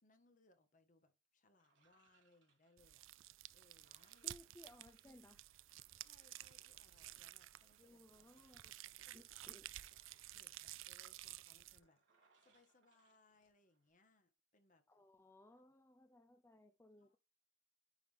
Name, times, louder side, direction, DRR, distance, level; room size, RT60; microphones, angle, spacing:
voice 1, 0.0-3.1 3.5-4.4 6.0-8.3 9.0-9.9 10.3-14.8 17.0-17.2, left 2 dB, 40° left, 1.4 m, -73 dB
sound 1, 1.6-13.9, right 5 dB, 65° right, 2.8 m, -78 dB
sound 2, 2.8-11.8, right 15 dB, 80° right, 0.4 m, -53 dB
voice 2, 4.2-5.4 7.8-8.8 9.1-9.7 14.9-17.2, left 1 dB, 15° left, 0.5 m, -63 dB
sound 3, 6.2-7.6 8.2-10.2 11.1-12.0 13.3-13.5, left 3 dB, 90° left, 1.8 m, -79 dB
10.0 x 3.7 x 3.4 m
head